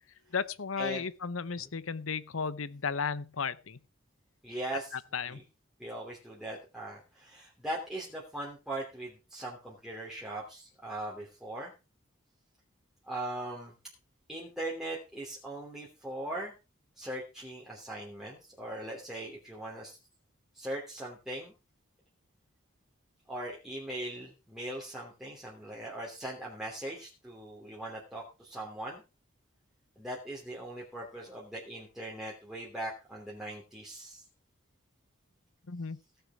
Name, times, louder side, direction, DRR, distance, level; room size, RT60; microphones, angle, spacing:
voice 1, 0.3-3.8 4.9-5.4 35.7-36.0, left 5 dB, 80° left, 0.8 m, -34 dB
voice 2, 4.4-4.9 5.3-5.4 5.8-11.7 13.1-13.7 14.3-16.5 17.0-20.0 20.5-21.5 23.3-29.0 30.0-34.2, right 1 dB, ahead, 3.0 m, -40 dB
17.0 x 6.9 x 4.6 m
head